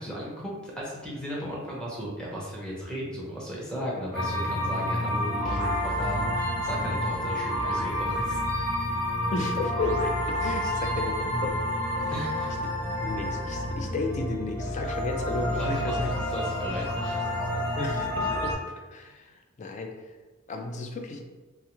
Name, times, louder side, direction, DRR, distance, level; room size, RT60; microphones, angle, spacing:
voice 1, 0.0-8.7 10.6-10.7 12.1-12.5 15.5-17.3, equal, 5° left, -6 dB, 0.7 m, -36 dB
sound 1, 4.1-18.5, left 1 dB, 65° left, 0.8 m, -29 dB
voice 2, 9.3-11.6 13.0-16.1 17.8-18.6 18.9-19.9 20.5-21.2, left 3 dB, 35° left, 4 dB, 0.3 m, -33 dB
3.1 x 2.3 x 3.0 m, 1.2 s
head